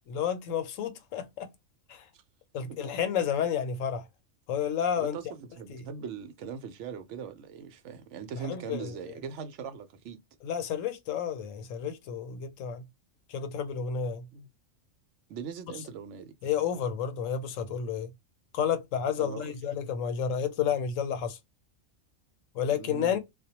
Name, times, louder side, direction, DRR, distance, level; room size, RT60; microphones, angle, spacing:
voice 1, 0.1-1.5 1.9-2.0 2.5-4.1 4.5-5.2 5.7-5.8 8.5-8.9 10.4-12.8 13.3-14.2 16.4-18.1 18.5-21.4 22.5-23.2, left 8 dB, 80° left, 1.0 m, -31 dB
voice 2, 5.0-10.2 14.3-14.5 15.3-16.3 19.2-19.6 22.7-23.2, right 6 dB, 70° right, 0.9 m, -41 dB
2.2 x 2.1 x 2.7 m
omnidirectional pair, 1.3 m